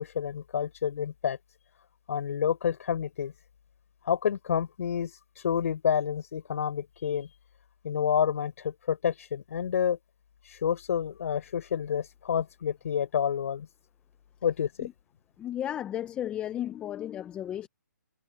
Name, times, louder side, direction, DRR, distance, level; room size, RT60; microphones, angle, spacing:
voice 1, 0.0-1.4 2.1-3.3 4.0-5.1 5.4-7.3 7.8-10.0 10.5-13.7 14.4-14.9, left 8 dB, 50° left, 4.5 m, -29 dB
voice 2, 15.4-17.7, left 11 dB, 10° left, 0.8 m, -34 dB
hypercardioid pair, 155°, 10 cm